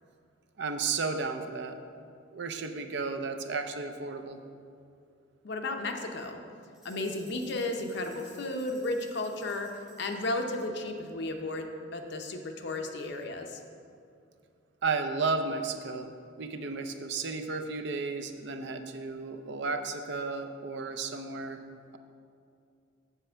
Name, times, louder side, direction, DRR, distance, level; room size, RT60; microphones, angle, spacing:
voice 1, 0.6-1.8 2.3-4.4 14.8-16.1 16.4-21.6, right 4 dB, 60° right, 7 dB, 0.5 m, -33 dB
voice 2, 5.4-6.4 6.8-9.7 10.0-13.6, left 2 dB, 60° left, 4 dB, 0.7 m, -34 dB
sound 1, 6.7-10.4, equal, ahead, 1.9 m, -57 dB
7.5 x 4.3 x 6.8 m, 2.4 s
head